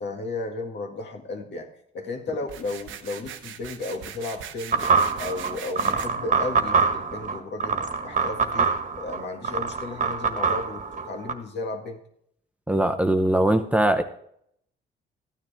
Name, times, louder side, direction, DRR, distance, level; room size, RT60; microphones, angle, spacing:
voice 1, 0.0-1.7 1.9-4.9 5.2-12.0, left 3 dB, 60° left, 3 dB, 1.9 m, -34 dB
sound 1, 2.4-6.1, right 9 dB, 80° right, 0.9 m, -40 dB
sound 2, 4.7-11.3, right 5 dB, 40° right, 1.4 m, -25 dB
voice 2, 12.7-14.0, right 1 dB, 5° right, 6 dB, 0.8 m, -21 dB
13.5 x 9.7 x 3.5 m, 0.70 s
cardioid pair, 90°, 20 cm